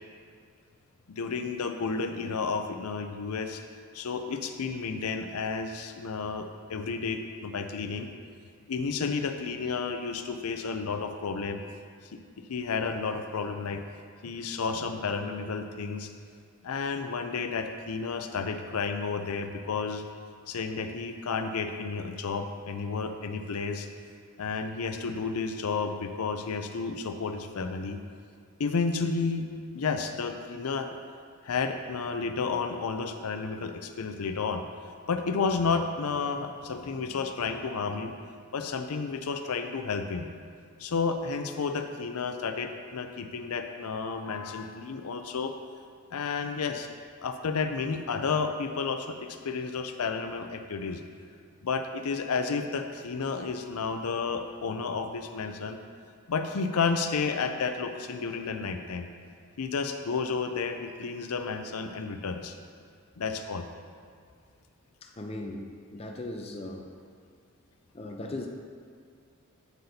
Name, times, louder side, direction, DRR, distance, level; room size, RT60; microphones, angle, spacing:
voice 1, 1.1-3.6 3.9-8.1 8.7-11.6 12.5-13.8 14.2-16.1 16.6-20.0 20.5-23.9 24.4-28.0 28.6-29.4 29.7-30.9 31.4-34.6 35.1-38.1 38.5-40.3 40.8-45.5 46.1-46.9 47.2-51.0 51.6-55.8 56.3-59.1 59.6-62.5 63.2-63.7, left 5 dB, 90° left, 6 dB, 0.5 m, -31 dB
voice 2, 65.2-66.8 67.9-68.5, left 2 dB, 25° left, 2 dB, 0.5 m, -38 dB
8.2 x 7.8 x 2.8 m, 2.2 s
head